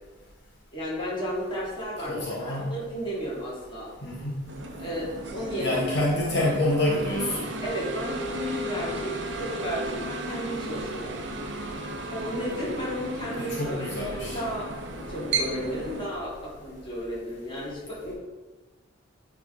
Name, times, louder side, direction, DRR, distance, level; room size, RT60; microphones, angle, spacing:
voice 1, 0.7-3.9 4.8-5.8 6.4-6.5 7.6-11.2 12.1-14.7 15.0-18.1, equal, 25° left, -6 dB, 2.1 m, -33 dB
voice 2, 2.1-2.7 4.0-4.4 5.6-7.5 13.4-14.4, left 1 dB, 60° left, -5 dB, 1.3 m, -27 dB
sound 1, 4.5-16.1, right 2 dB, 65° right, 0.8 m, -34 dB
9.8 x 3.7 x 3.7 m, 1.3 s
head